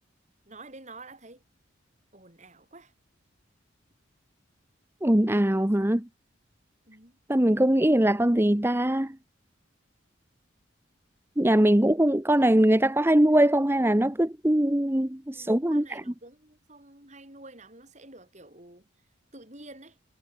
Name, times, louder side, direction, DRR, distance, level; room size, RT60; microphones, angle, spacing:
voice 1, 0.4-1.4 2.1-2.9 6.9-7.2 15.3-18.9 19.3-20.0, right 2 dB, 35° right, 6.7 m, -49 dB
voice 2, 5.0-6.1 7.3-9.2 11.4-16.0, right 1 dB, 10° right, 0.9 m, -22 dB
head